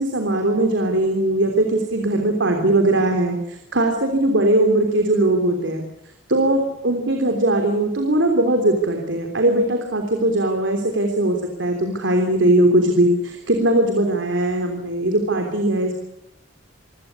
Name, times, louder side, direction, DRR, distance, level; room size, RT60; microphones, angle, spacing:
voice 1, 0.0-5.8 6.3-15.9, right 1 dB, 85° right, 4 dB, 3.4 m, -20 dB
26.5 x 16.5 x 8.5 m, 0.82 s
head